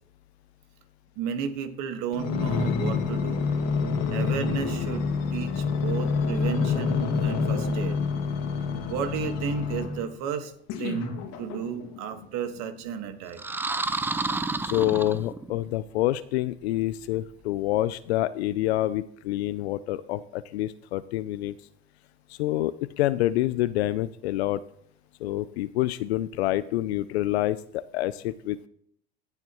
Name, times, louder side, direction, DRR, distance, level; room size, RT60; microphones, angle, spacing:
voice 1, 1.1-3.4 4.1-8.0 8.8-10.5 10.8-13.4, right 7 dB, 55° right, 8 dB, 1.6 m, -33 dB
sound 1, 2.1-10.1 10.7-12.0 12.6-12.7, left 5 dB, 55° left, 2.0 m, -27 dB
sound 2, 13.3-15.6, right 3 dB, 5° right, 0.4 m, -30 dB
voice 2, 14.3-21.6 22.3-24.6 25.2-28.7, left 15 dB, 80° left, 15 dB, 0.5 m, -27 dB
16.0 x 7.3 x 3.0 m, 0.66 s
hypercardioid pair, 100°, 32 cm